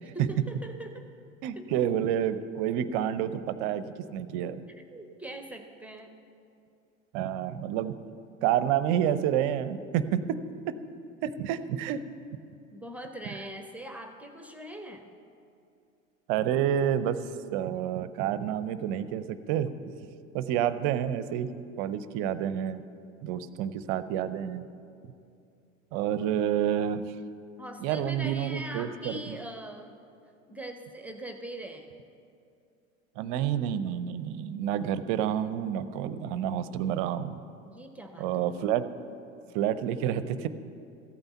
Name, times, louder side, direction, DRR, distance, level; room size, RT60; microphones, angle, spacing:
voice 1, 0.0-1.1 1.6-1.8 4.7-6.1 12.7-15.2 27.6-30.0 30.5-31.9 37.6-38.6, right 1 dB, 5° right, 6 dB, 0.8 m, -42 dB
voice 2, 1.4-4.6 7.1-8.0 8.4-10.2 10.7-10.8 11.2-12.0 16.3-19.7 20.3-21.5 21.8-22.8 23.2-24.6 25.9-27.0 27.8-29.4 33.2-37.4 38.2-38.8 39.5-40.5, right 10 dB, 40° right, 14 dB, 0.6 m, -29 dB
14.0 x 8.9 x 6.9 m, 2.5 s
figure-of-eight pair, 80°, 40 cm